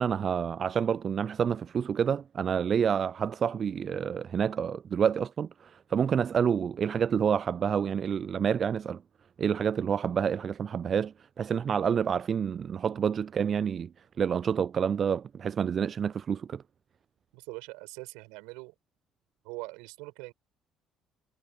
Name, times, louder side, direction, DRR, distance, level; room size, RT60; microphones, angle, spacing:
voice 1, 0.0-9.0 9.4-13.9 14.2-16.6, right 7 dB, 45° right, 0.3 m, -28 dB
voice 2, 17.3-18.7 19.4-20.3, right 27 dB, 80° right, 7.5 m, -42 dB
hypercardioid pair, 60°, 0 cm